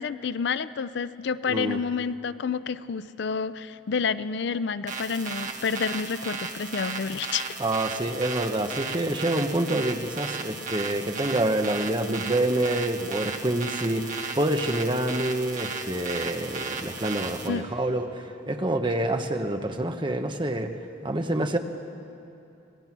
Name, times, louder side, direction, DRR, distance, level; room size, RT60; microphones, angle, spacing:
voice 1, 0.0-7.6 17.5-17.7, left 5 dB, 60° left, 15 dB, 0.5 m, -29 dB
voice 2, 1.5-1.8 7.6-20.7 21.0-21.6, right 1 dB, 25° right, 6 dB, 1.0 m, -27 dB
sound 1, 4.9-17.5, right 4 dB, 40° right, 1.6 m, -35 dB
25.0 x 18.5 x 6.1 m, 2.7 s
head